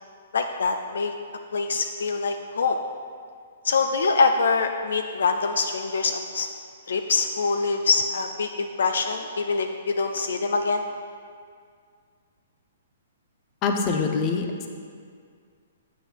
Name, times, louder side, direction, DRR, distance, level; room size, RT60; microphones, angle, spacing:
voice 1, 0.3-1.1 1.5-2.8 3.6-6.5 6.9-10.8, left 4 dB, 75° left, 6 dB, 0.3 m, -24 dB
voice 2, 13.6-14.7, left 4 dB, 30° left, 4 dB, 0.6 m, -24 dB
7.8 x 6.0 x 2.4 m, 2.1 s
hypercardioid pair, 130°, 0 cm